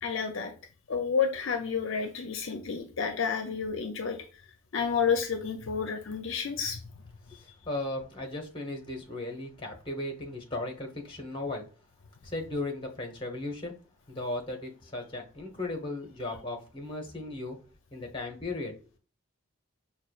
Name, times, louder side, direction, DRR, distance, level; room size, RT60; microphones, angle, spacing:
voice 1, 0.0-0.5 0.9-4.2 4.7-6.9, left 6 dB, 60° left, 0.5 m, -30 dB
voice 2, 7.3-11.6 12.2-13.7 14.1-17.6 17.9-18.7, left 2 dB, 25° left, 0.8 m, -36 dB
5.4 x 2.3 x 2.3 m
head